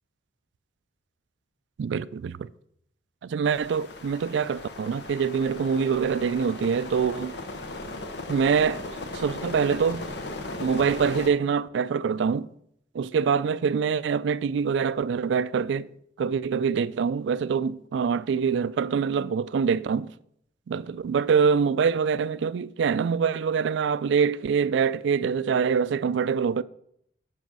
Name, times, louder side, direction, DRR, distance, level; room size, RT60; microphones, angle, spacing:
voice 1, 1.8-2.5 3.2-7.3 8.3-8.8 9.1-10.1 10.6-12.5 12.9-15.9 16.2-20.1 20.7-26.6, right 6 dB, 75° right, 0.3 m, -25 dB
sound 1, 3.4-11.3, left 2 dB, 65° left, 0.8 m, -37 dB
7.5 x 5.0 x 6.0 m
head